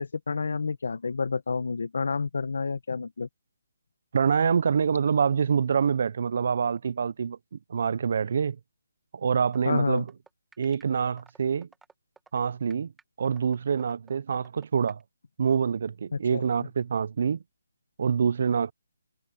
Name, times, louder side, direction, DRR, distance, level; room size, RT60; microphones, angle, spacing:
voice 1, 0.0-3.3 9.7-10.0 16.1-16.7, left 4 dB, 65° left, 0.9 m, -29 dB
voice 2, 4.1-7.4 7.7-8.6 9.1-10.1 10.6-11.7 12.3-12.9 13.2-15.0 15.4-17.4 18.0-18.7, right 6 dB, 45° right, 0.4 m, -26 dB
sound 1, 9.5-15.0, right 4 dB, 5° right, 1.7 m, -54 dB
hypercardioid pair, 175°, 0 cm